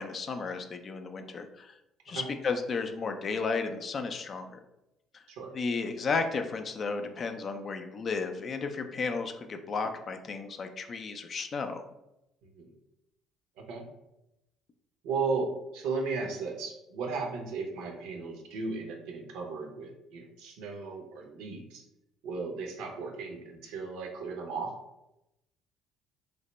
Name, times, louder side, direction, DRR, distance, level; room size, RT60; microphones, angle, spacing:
voice 1, 0.0-1.7 2.1-4.6 5.5-11.8, left 4 dB, 40° left, 6 dB, 0.3 m, -33 dB
voice 2, 12.4-12.7 13.6-13.9 15.0-21.8 22.2-24.7, right 4 dB, 65° right, 2 dB, 0.5 m, -35 dB
3.2 x 2.1 x 3.0 m, 0.89 s
figure-of-eight pair, 50°, 0 cm